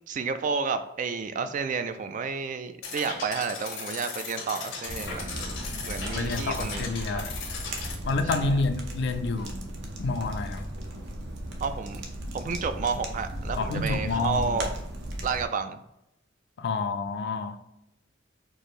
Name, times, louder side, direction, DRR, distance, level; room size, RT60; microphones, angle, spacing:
voice 1, 0.1-5.3 5.8-6.9 7.1-7.3 8.4-8.6 11.6-12.0 12.3-14.7 15.2-15.8, right 5 dB, 45° right, 0.3 m, -31 dB
sound 1, 2.8-8.0, left 4 dB, 85° left, 0.9 m, -37 dB
sound 2, 4.9-15.5, right 1 dB, 65° right, 0.7 m, -36 dB
voice 2, 6.1-7.3 8.1-9.7 10.0-10.7 13.6-14.6 16.6-17.6, left 3 dB, 65° left, 0.4 m, -29 dB
4.5 x 2.6 x 3.1 m
head